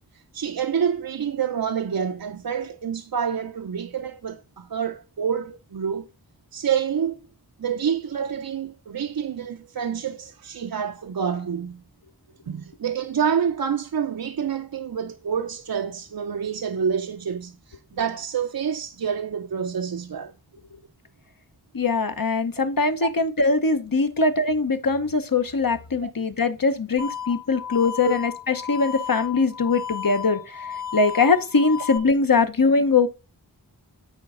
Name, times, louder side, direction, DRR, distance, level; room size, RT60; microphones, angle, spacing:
voice 1, 0.3-6.1 6.5-7.2 7.6-11.8 12.5-20.3 26.0-26.1 28.0-28.1, right 7 dB, 65° right, 0.5 m, -27 dB
voice 2, 21.7-33.1, left 4 dB, 60° left, 0.9 m, -22 dB
sound 1, 27.0-32.0, left 8 dB, 85° right, 1.1 m, -34 dB
9.0 x 4.2 x 3.6 m
wide cardioid pair, 40°, 38 cm